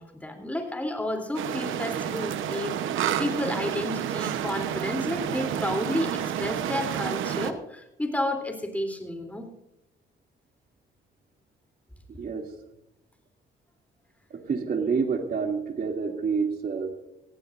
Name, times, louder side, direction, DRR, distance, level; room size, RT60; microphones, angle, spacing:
voice 1, 0.0-9.5, left 1 dB, 5° left, 4 dB, 3.3 m, -31 dB
sound 1, 1.3-7.5, right 9 dB, 85° right, 1.0 m, -30 dB
voice 2, 12.1-12.5 14.3-16.9, right 5 dB, 50° right, 3 dB, 2.8 m, -28 dB
19.0 x 15.5 x 2.6 m, 0.86 s
cardioid pair, 90°, 20 cm